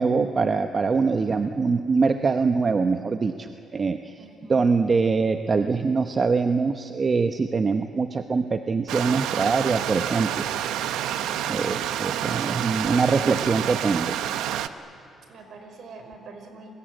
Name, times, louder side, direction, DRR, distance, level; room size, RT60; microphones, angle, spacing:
voice 1, 0.0-4.2 4.5-10.4 11.5-14.2, right 4 dB, 35° right, 7 dB, 1.0 m, -23 dB
voice 2, 4.2-4.6 15.2-16.7, right 3 dB, 65° right, 5 dB, 5.3 m, -44 dB
Stream, 8.9-14.7, right 10 dB, 90° right, 1.0 m, -28 dB
30.0 x 21.0 x 9.1 m, 2.9 s
cardioid pair, 90°, 0 cm